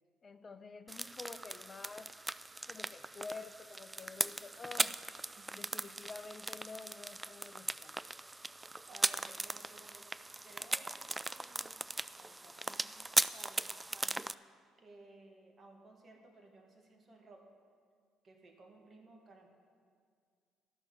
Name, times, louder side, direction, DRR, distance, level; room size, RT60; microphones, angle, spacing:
voice 1, 0.2-2.1 2.7-5.0 5.5-7.9, left 4 dB, 35° left, 10 dB, 0.7 m, -49 dB
sound 1, 0.9-14.3, right 2 dB, 15° right, 0.3 m, -38 dB
voice 2, 8.9-10.1 10.4-11.9 12.1-13.0 13.3-14.3 14.8-17.5 18.2-19.5, right 2 dB, 40° right, 3 dB, 1.9 m, -58 dB
12.5 x 6.3 x 7.2 m, 2.1 s
hypercardioid pair, 55°, 0 cm